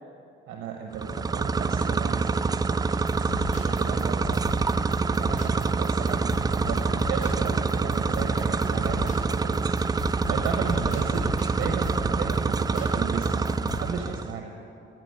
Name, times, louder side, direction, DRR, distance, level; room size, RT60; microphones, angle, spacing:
voice 1, 0.5-14.5, right 6 dB, 90° right, 2 dB, 1.1 m, -35 dB
sound 1, 0.9-14.3, right 4 dB, 20° right, 0.3 m, -26 dB
sound 2, 3.1-14.1, left 2 dB, 40° left, 1.8 m, -38 dB
14.0 x 6.0 x 8.0 m, 2.5 s
cardioid pair, 90°, 20 cm